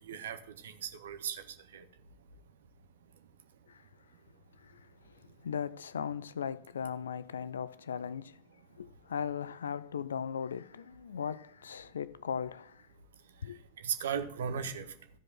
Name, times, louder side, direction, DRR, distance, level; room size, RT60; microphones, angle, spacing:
voice 1, 0.1-1.4 1.7-1.8 13.8-14.9, right 7 dB, 60° right, 1.0 m, -36 dB
voice 2, 4.6-4.9 5.4-8.4 8.8-12.9 13.4-13.6, left 7 dB, 70° left, 0.4 m, -38 dB
14.0 x 5.1 x 6.1 m
figure-of-eight pair, 90°, 0 cm